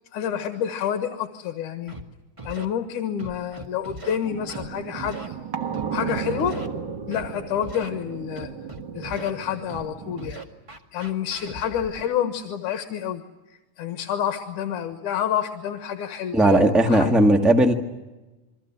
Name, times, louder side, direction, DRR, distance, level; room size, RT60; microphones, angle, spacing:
voice 1, 0.1-1.9 2.4-5.4 5.9-6.6 7.1-8.5 8.9-10.4 10.9-13.2 13.8-17.1, left 9 dB, 75° left, 6 dB, 2.8 m, -28 dB
Scratching (performance technique), 1.9-2.0 2.4-2.6 3.2-4.2 4.5-4.7 5.0-5.3 5.7-6.7 7.1-7.3 7.6-7.9 8.4-9.3 9.7-9.8 10.2-12.0, right 2 dB, 20° right, 1.0 m, -39 dB
sound 1, 4.2-10.3, right 7 dB, 55° right, 1.3 m, -34 dB
voice 2, 16.3-17.7, right 1 dB, ahead, 4 dB, 0.4 m, -17 dB
28.0 x 22.5 x 7.5 m, 1.1 s
omnidirectional pair, 3.8 m